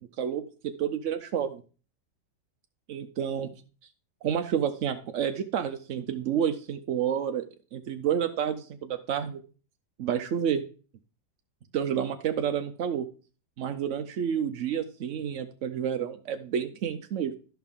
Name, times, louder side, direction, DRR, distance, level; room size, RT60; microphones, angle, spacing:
voice 1, 0.2-1.6 2.9-3.5 4.2-7.5 7.7-9.4 10.0-10.6 11.7-13.1 13.6-17.4, right 8 dB, 65° right, 7 dB, 0.7 m, -29 dB
13.0 x 5.8 x 3.7 m, 0.37 s
omnidirectional pair, 2.0 m